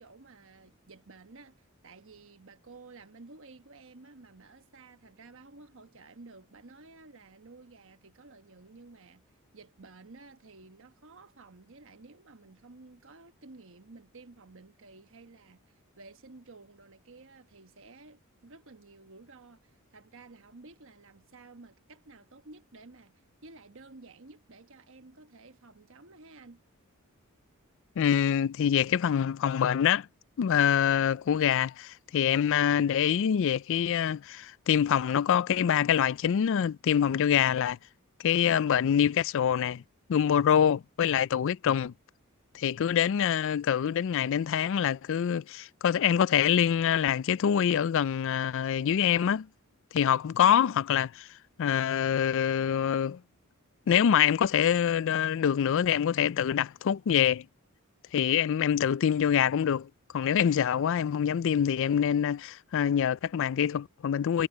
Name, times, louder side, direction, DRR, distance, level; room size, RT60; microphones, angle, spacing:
voice 1, 0.0-9.2 9.5-26.6, right 3 dB, 65° right, 1.3 m, -53 dB
voice 2, 28.0-30.1 30.4-37.8 38.2-39.8 40.1-41.9 42.5-49.5 49.9-51.3 51.6-53.2 53.9-57.4 58.1-59.9 60.1-64.5, left 8 dB, 60° left, 0.4 m, -25 dB
head